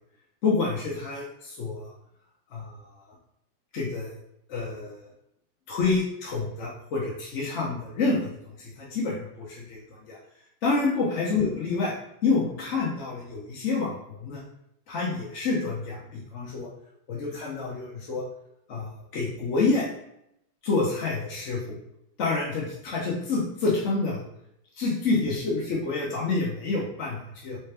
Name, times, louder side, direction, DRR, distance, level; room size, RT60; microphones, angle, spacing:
voice 1, 0.4-1.9 2.5-2.8 3.7-4.1 4.5-5.0 5.7-8.3 8.6-10.2 10.6-11.9 12.2-14.4 14.9-16.7 17.1-18.2 18.7-19.9 20.6-21.7 22.2-24.2 24.8-27.6, left 3 dB, 55° left, -5 dB, 0.8 m, -28 dB
3.3 x 3.0 x 3.3 m, 0.79 s
omnidirectional pair, 2.2 m